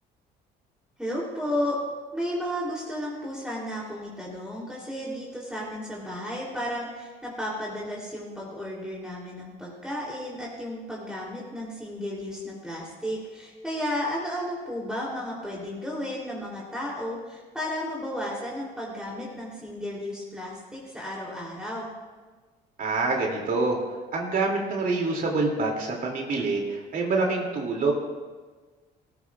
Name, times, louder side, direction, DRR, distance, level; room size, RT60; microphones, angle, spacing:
voice 1, 1.0-1.8 2.1-21.9, left 1 dB, 5° right, -5 dB, 3.2 m, -33 dB
voice 2, 22.8-23.8 24.1-27.9, right 3 dB, 50° right, 0 dB, 2.7 m, -26 dB
17.5 x 15.0 x 2.4 m, 1.4 s
cardioid pair, 100°, 19 cm